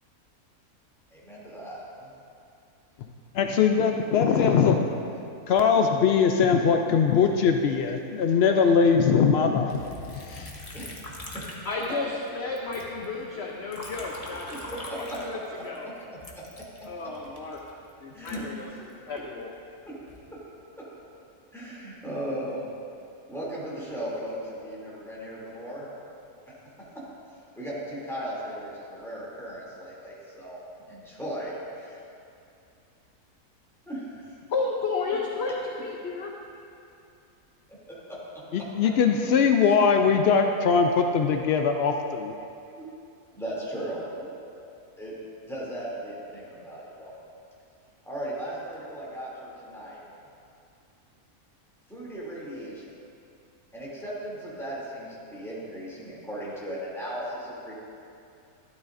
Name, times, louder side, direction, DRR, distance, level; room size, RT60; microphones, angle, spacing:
voice 1, 1.1-2.1 4.2-4.5 10.7-11.4 14.5-15.9 18.1-18.5 19.9-20.0 20.8-20.9 21.5-22.7 23.3-26.2 27.5-30.6 30.9-32.0 33.9-34.2 37.7-38.2 38.6-38.7 39.6-39.7 42.8-42.9 43.3-44.4 45.0-45.1 45.5-47.1 48.0-50.0 51.9-52.9 53.7-57.7, right 1 dB, ahead, -8 dB, 2.7 m, -37 dB
voice 2, 3.3-4.9 5.5-9.8 10.1-10.5 38.5-42.3, left 6 dB, 80° left, 4 dB, 0.5 m, -21 dB
Liquid, 9.7-12.3 12.6-15.8 16.2-19.2 19.8-20.3, left 2 dB, 30° left, 1.0 m, -42 dB
voice 3, 11.6-14.5 14.9-15.9 16.8-17.6 18.0-19.5 34.5-36.3, left 3 dB, 55° left, -1 dB, 0.9 m, -32 dB
12.5 x 12.0 x 2.6 m, 2.5 s
omnidirectional pair, 1.6 m